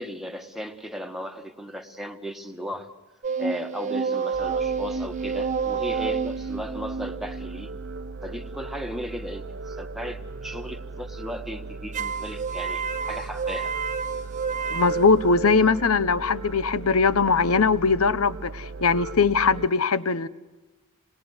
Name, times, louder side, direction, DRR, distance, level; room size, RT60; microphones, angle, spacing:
voice 1, 0.0-2.9 3.4-7.7 8.2-13.7, equal, ahead, 1.6 m, -36 dB
sound 1, 3.2-8.6 11.9-15.9, right 5 dB, 35° right, 1.0 m, -30 dB
sound 2, 4.3-19.7, right 3 dB, 55° right, 0.8 m, -38 dB
voice 2, 14.7-20.3, left 4 dB, 80° left, 1.0 m, -21 dB
27.5 x 21.0 x 8.2 m
head